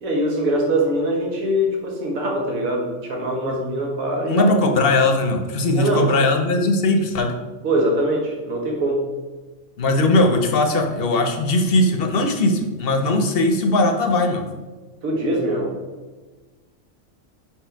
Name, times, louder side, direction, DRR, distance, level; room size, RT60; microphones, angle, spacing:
voice 1, 0.0-4.5 5.7-6.1 7.6-9.1 15.0-15.7, right 1 dB, 85° right, 0 dB, 1.5 m, -22 dB
voice 2, 4.2-7.3 9.8-14.4, left 2 dB, 50° left, 5 dB, 0.8 m, -19 dB
5.3 x 4.8 x 4.4 m, 1.3 s
omnidirectional pair, 1.4 m